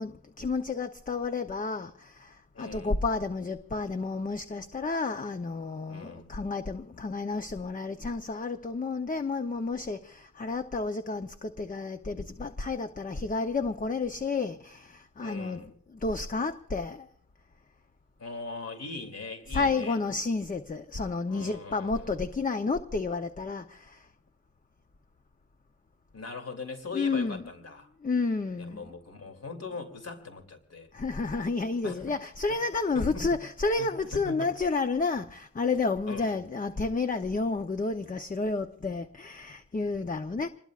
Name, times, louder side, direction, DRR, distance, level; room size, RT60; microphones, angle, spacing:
voice 1, 0.0-15.6 15.9-17.1 19.5-24.1 26.9-27.4 28.0-28.9 30.9-40.5, left 3 dB, 25° left, 0.7 m, -31 dB
voice 2, 2.5-2.9 5.9-6.4 15.2-15.7 18.2-20.0 21.3-22.2 26.1-27.9 28.6-30.9 31.8-32.0 32.9-33.4 33.8-33.9 34.1-34.5 36.1-36.4, left 4 dB, 45° left, 2.8 m, -40 dB
27.5 x 20.5 x 2.4 m
wide cardioid pair, 145°, 34 cm